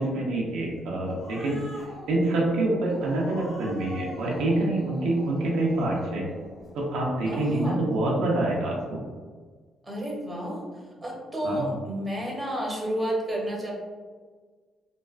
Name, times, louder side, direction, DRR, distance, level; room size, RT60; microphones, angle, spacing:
voice 1, 0.0-6.2 6.7-9.0 11.4-11.7, right 2 dB, 85° right, -3 dB, 0.6 m, -26 dB
Growling, 0.8-7.6, left 1 dB, 55° left, 0.6 m, -44 dB
voice 2, 7.2-7.9 9.8-10.6 11.0-13.7, equal, 20° right, -3 dB, 0.8 m, -31 dB
3.2 x 2.3 x 2.4 m, 1.5 s
cardioid pair, 90°, 0 cm